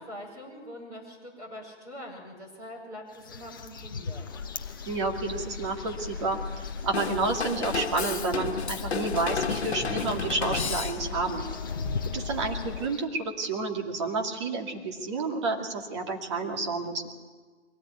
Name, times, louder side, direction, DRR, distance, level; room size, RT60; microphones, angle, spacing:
voice 1, 0.0-4.2, left 1 dB, 10° right, -4 dB, 5.4 m, -43 dB
sound 1, 3.1-13.1, left 4 dB, 20° left, 0.8 m, -42 dB
sound 2, 4.3-12.9, left 5 dB, 45° left, 2.3 m, -38 dB
voice 2, 4.9-6.4 6.8-11.5 12.1-17.1, right 3 dB, 25° right, 2 dB, 2.5 m, -30 dB
Drum kit / Drum, 6.9-11.3, left 5 dB, 70° left, 1.7 m, -32 dB
23.0 x 18.0 x 9.4 m, 1.4 s
hypercardioid pair, 165°, 34 cm